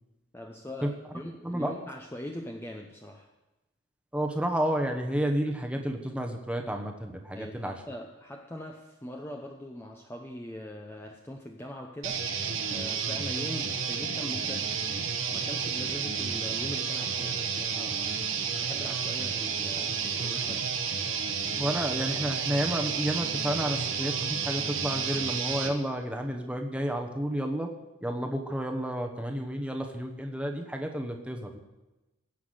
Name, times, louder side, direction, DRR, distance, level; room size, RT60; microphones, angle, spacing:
voice 1, 0.3-3.3 7.3-14.8 15.3-20.8, left 1 dB, 10° left, 1 dB, 0.7 m, -42 dB
voice 2, 4.1-7.7 21.6-27.7 28.0-31.6, equal, 5° right, 2 dB, 1.0 m, -31 dB
sound 1, 12.0-25.7, right 6 dB, 70° right, 1.3 m, -31 dB
17.0 x 5.9 x 7.8 m, 1.0 s
head